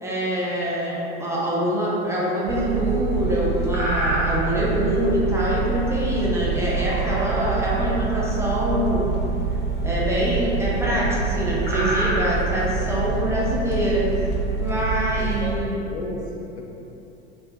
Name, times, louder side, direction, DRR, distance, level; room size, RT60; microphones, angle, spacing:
voice 1, 0.0-9.2 9.8-14.1 14.6-15.7, right 1 dB, 10° right, -6 dB, 0.4 m, -24 dB
sound 1, 2.3-2.6 3.0-3.3 3.6-4.8 6.6-7.7 8.0-8.1 8.4-8.7 9.6-10.7 11.0-11.1 11.4-14.2, equal, 30° right, 0.9 m, -29 dB
sound 2, 2.5-15.5, right 4 dB, 60° right, 0.6 m, -26 dB
voice 2, 15.2-16.6, left 2 dB, 75° left, 0 dB, 0.5 m, -34 dB
3.3 x 2.2 x 2.8 m, 2.9 s
figure-of-eight pair, 70°, 33 cm